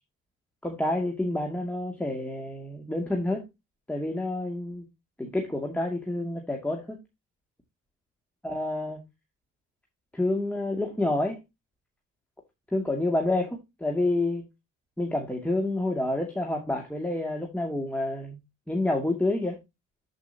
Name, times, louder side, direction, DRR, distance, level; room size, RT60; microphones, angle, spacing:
voice 1, 0.6-3.5 3.9-4.8 5.2-7.0 8.4-9.0 10.1-11.4 12.7-14.4 15.0-18.4 18.7-19.6, left 2 dB, 5° left, 2.5 m, -28 dB
13.5 x 5.7 x 2.9 m
cardioid pair, 90°, 30 cm